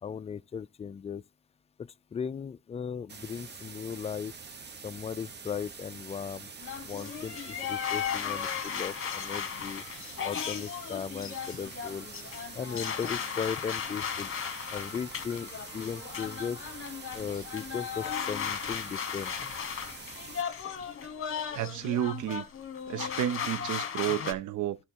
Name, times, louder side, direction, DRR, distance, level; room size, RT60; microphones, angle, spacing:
voice 1, 0.0-1.2 1.8-4.3 4.8-6.5 6.9-9.8 10.2-12.1 12.5-14.3 14.7-16.6 17.1-19.3, left 7 dB, 20° left, 0.3 m, -37 dB
sound 1, 3.1-20.4, right 5 dB, 35° right, 0.9 m, -46 dB
sound 2, 6.6-24.3, left 8 dB, 45° left, 1.2 m, -36 dB
voice 2, 21.5-22.4 22.9-24.8, right 11 dB, 80° right, 0.6 m, -31 dB
11.5 x 3.9 x 4.5 m
cardioid pair, 90°, 30 cm